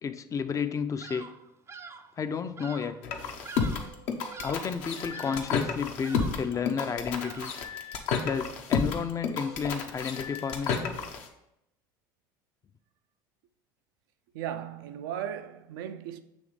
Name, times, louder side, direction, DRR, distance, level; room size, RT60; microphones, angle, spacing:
voice 1, 0.0-1.3 2.2-3.0 4.4-7.5 8.2-10.9, left 6 dB, 30° left, 0.5 m, -32 dB
Bird vocalization bird call bird song, 1.0-1.4 1.7-2.1 2.6-3.0 3.4-4.0 4.3-4.8 5.1-5.6 6.0-6.5 7.2-7.7, right 4 dB, 25° right, 0.5 m, -45 dB
sound 1, 3.0-11.3, left 5 dB, 65° left, 0.9 m, -31 dB
voice 2, 14.3-16.2, right 9 dB, 75° right, 0.5 m, -36 dB
7.1 x 3.2 x 4.8 m
hypercardioid pair, 80°, 11 cm